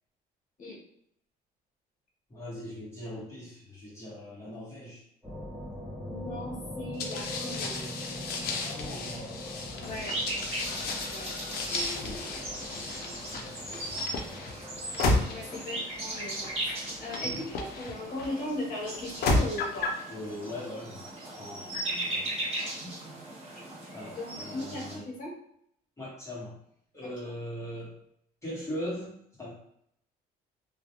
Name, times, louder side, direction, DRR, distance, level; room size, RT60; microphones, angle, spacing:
voice 1, 2.3-5.0 8.5-9.9 10.4-10.8 11.6-12.3 12.7-14.0 15.1-15.4 17.1-17.4 20.1-22.7 23.9-25.1 26.0-26.6 26.9-28.0 28.4-29.5, left 1 dB, 15° left, -7 dB, 1.0 m, -41 dB
sound 1, 5.2-19.6, left 1 dB, 5° right, 1.0 m, -44 dB
voice 2, 6.0-7.9 9.8-10.1 11.0-11.9 12.3-12.4 13.0-13.2 15.0-19.9 23.5-23.7 24.2-25.3 27.0-27.1, left 1 dB, 50° left, -1 dB, 1.0 m, -38 dB
sound 2, 7.0-18.3 18.9-20.0, left 3 dB, 65° left, 0.5 m, -33 dB
sound 3, 9.8-25.0, right 1 dB, 35° right, 1.1 m, -38 dB
2.4 x 2.1 x 2.8 m, 0.71 s
cardioid pair, 110°, 17 cm